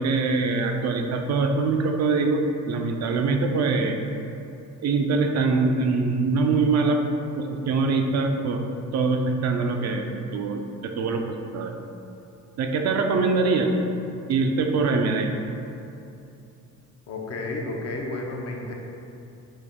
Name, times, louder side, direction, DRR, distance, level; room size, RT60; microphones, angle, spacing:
voice 1, 0.0-2.4 2.7-4.0 4.8-7.0 7.4-8.6 8.9-10.1 10.3-11.7 12.6-13.7 14.3-15.3, right 4 dB, 55° right, 4 dB, 0.5 m, -23 dB
voice 2, 17.1-18.7, left 2 dB, 50° left, 0 dB, 0.7 m, -31 dB
5.1 x 2.0 x 3.6 m, 2.7 s
cardioid pair, 80°, 32 cm